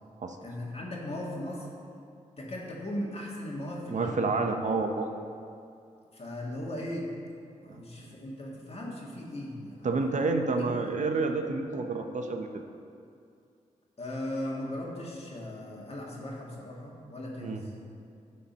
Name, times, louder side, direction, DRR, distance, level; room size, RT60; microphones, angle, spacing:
voice 1, 0.4-1.7 2.4-4.4 6.1-7.1 7.6-10.1 10.7-10.9 14.0-17.7, left 1 dB, 50° left, -3 dB, 1.9 m, -38 dB
voice 2, 3.9-5.1 7.7-8.1 9.8-12.5 17.4-17.6, right 3 dB, 65° right, 5 dB, 0.7 m, -29 dB
11.5 x 4.3 x 5.5 m, 2.4 s
cardioid pair, 65°, 14 cm